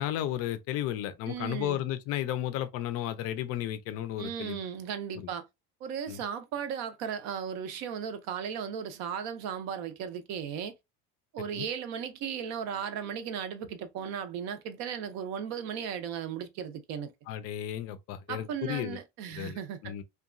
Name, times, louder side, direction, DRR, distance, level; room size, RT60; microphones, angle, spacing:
voice 1, 0.0-4.6 5.1-5.3 6.1-6.2 11.5-11.7 17.3-19.0 19.3-20.0, left 12 dB, 45° left, 0.4 m, -33 dB
voice 2, 1.3-1.8 4.2-5.5 5.8-10.7 11.3-17.1 18.3-19.9, right 8 dB, 50° right, 0.5 m, -36 dB
2.9 x 2.2 x 2.4 m
cardioid pair, 150°, 35 cm